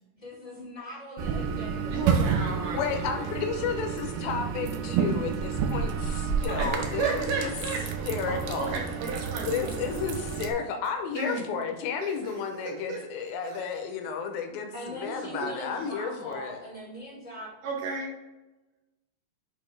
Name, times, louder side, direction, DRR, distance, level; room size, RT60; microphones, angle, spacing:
voice 1, 0.2-2.0 2.6-3.2 14.7-17.5, equal, 45° left, -7 dB, 0.5 m, -41 dB
sound 1, 1.2-10.5, right 6 dB, 85° right, 2.4 m, -30 dB
voice 2, 1.9-3.3 6.5-9.8 11.1-11.5 12.0-13.1 13.4-13.6 15.4-15.5 15.8-15.9 17.6-18.1, right 4 dB, 70° right, -1 dB, 2.3 m, -33 dB
voice 3, 2.7-7.5 8.1-8.8 9.4-16.6, left 6 dB, 80° left, 5 dB, 2.4 m, -32 dB
8.4 x 3.4 x 3.3 m, 1.1 s
omnidirectional pair, 4.3 m